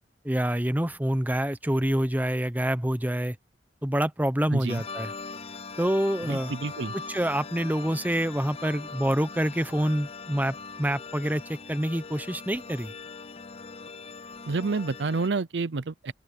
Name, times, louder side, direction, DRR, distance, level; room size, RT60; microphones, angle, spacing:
voice 1, 0.2-3.3 3.8-5.1 5.8-6.5 7.1-12.9, right 1 dB, 10° right, 1.0 m, -27 dB
voice 2, 4.5-4.8 6.3-6.9 14.5-16.1, right 4 dB, 80° right, 0.6 m, -29 dB
sound 1, 4.7-15.3, left 4 dB, 35° left, 0.8 m, -41 dB
open air
head